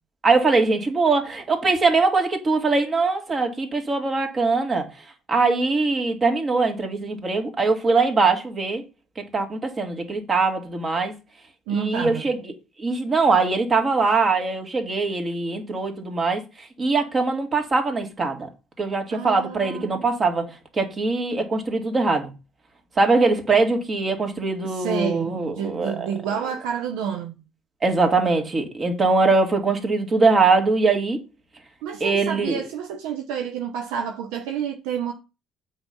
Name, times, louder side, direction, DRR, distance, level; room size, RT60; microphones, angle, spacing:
voice 1, 0.2-4.9 5.3-8.8 9.2-11.1 11.7-12.4 12.8-18.5 18.8-22.3 23.0-26.1 27.8-31.2 32.0-32.6, right 3 dB, 35° right, 2.3 m, -22 dB
voice 2, 11.7-12.3 19.1-20.1 24.6-27.4 31.8-35.1, right 8 dB, 70° right, 0.8 m, -29 dB
7.8 x 4.0 x 5.7 m
hypercardioid pair, 55°, 0 cm